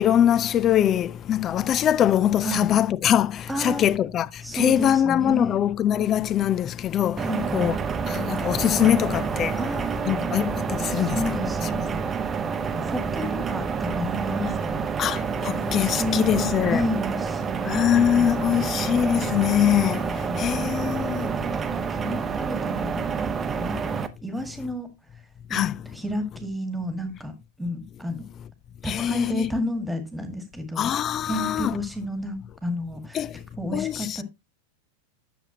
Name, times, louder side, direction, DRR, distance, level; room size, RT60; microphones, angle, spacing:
voice 1, 0.0-4.3 4.5-7.2 7.5-7.8 8.1-9.5 10.1-11.4 11.7-11.8 15.0-16.8 17.7-20.0 20.4-21.3 25.5-25.8 28.9-29.5 30.8-31.8 33.1-33.3 33.7-34.2, left 10 dB, 30° left, 0.5 m, -23 dB
voice 2, 3.5-3.9 4.4-5.6 7.2-7.7 9.6-10.2 10.9-12.1 12.7-14.8 15.5-17.8 18.1-18.7 19.9-20.8 21.4-23.1 23.6-23.9 24.2-24.9 25.5-27.3 27.6-28.3 28.8-30.9 31.3-33.3 33.6-34.2, left 1 dB, 5° right, 1.9 m, -31 dB
sound 1, 7.2-24.1, right 5 dB, 20° right, 0.8 m, -28 dB
10.0 x 7.0 x 2.8 m
figure-of-eight pair, 90°, 0 cm